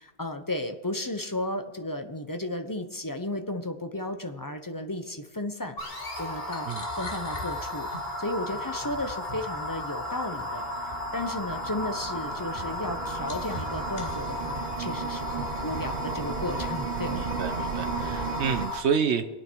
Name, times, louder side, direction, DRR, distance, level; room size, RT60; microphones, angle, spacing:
voice 1, 0.0-5.8 6.2-6.7 7.0-7.9 8.2-17.3, left 1 dB, 20° left, 7 dB, 0.9 m, -34 dB
sound 1, 5.8-18.8, left 1 dB, 65° left, 2.2 m, -34 dB
sound 2, 9.2-9.3 10.2-18.7, right 6 dB, 45° right, 0.9 m, -36 dB
voice 2, 17.1-19.3, right 6 dB, 90° right, 8 dB, 1.2 m, -29 dB
23.5 x 9.0 x 4.7 m, 1.2 s
omnidirectional pair, 1.1 m